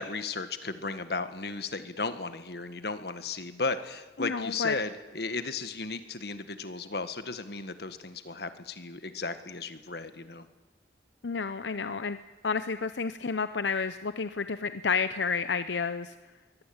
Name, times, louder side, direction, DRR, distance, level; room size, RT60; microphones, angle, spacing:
voice 1, 0.0-10.4, left 3 dB, 60° left, 10 dB, 1.7 m, -35 dB
voice 2, 4.2-4.7 11.2-12.2 12.4-16.1, left 5 dB, 85° left, 11 dB, 0.8 m, -30 dB
23.5 x 18.0 x 8.9 m, 1.2 s
head